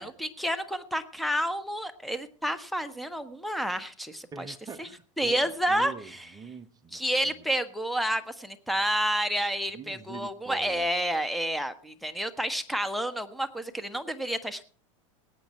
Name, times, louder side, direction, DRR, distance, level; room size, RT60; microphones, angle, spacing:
voice 1, 0.0-4.5 4.8-4.9 5.2-6.2 6.9-14.6, equal, ahead, 1.3 m, -30 dB
voice 2, 4.3-7.4 9.7-10.9, right 6 dB, 20° right, 0.9 m, -44 dB
19.0 x 8.9 x 4.4 m
hypercardioid pair, 110°, 17 cm